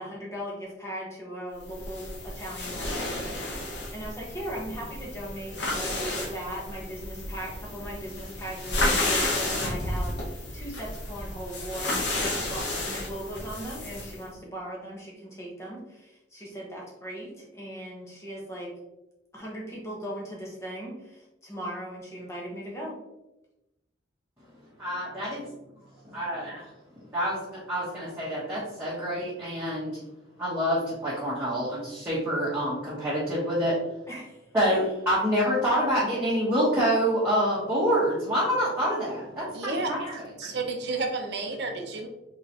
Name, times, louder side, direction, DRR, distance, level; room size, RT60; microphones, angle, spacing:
voice 1, 0.0-18.7 19.3-23.0 34.1-34.4 34.7-34.8, equal, 15° left, -4 dB, 1.1 m, -38 dB
sound 1, 1.7-14.2, left 2 dB, 60° left, 1.0 m, -32 dB
voice 2, 24.8-25.4 26.1-26.5 27.1-30.0 30.4-33.7 34.5-40.1 40.4-40.5, equal, 15° right, -10 dB, 1.3 m, -27 dB
voice 3, 39.5-39.9 40.4-42.1, right 3 dB, 60° right, 3 dB, 0.7 m, -31 dB
4.0 x 3.9 x 2.9 m, 0.96 s
head